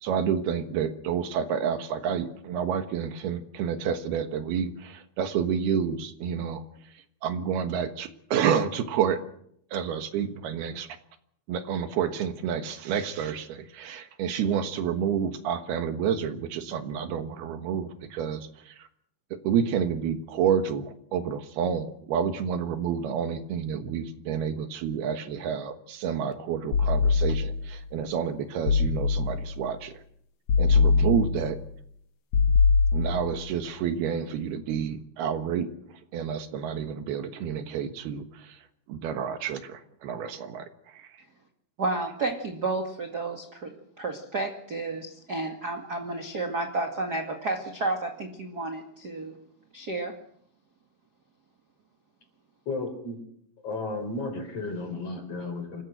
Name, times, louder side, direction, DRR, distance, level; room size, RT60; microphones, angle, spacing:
voice 1, 0.0-6.6 7.2-9.2 9.7-10.9 11.5-18.9 19.4-29.9 30.6-31.6 32.9-35.7 36.1-38.6 38.9-40.7 40.9-41.1, right 7 dB, 75° right, 8 dB, 3.3 m, -29 dB
sound 1, 26.7-27.7 28.7-29.6 30.5-31.6 32.3-33.4, left 5 dB, 55° left, 1.9 m, -22 dB
voice 2, 41.8-49.4 49.7-50.1, right 3 dB, 35° right, 3 dB, 1.8 m, -31 dB
voice 3, 52.7-53.2 53.6-55.8, left 3 dB, 40° left, 6 dB, 5.1 m, -33 dB
26.5 x 15.5 x 7.9 m, 0.70 s
omnidirectional pair, 4.7 m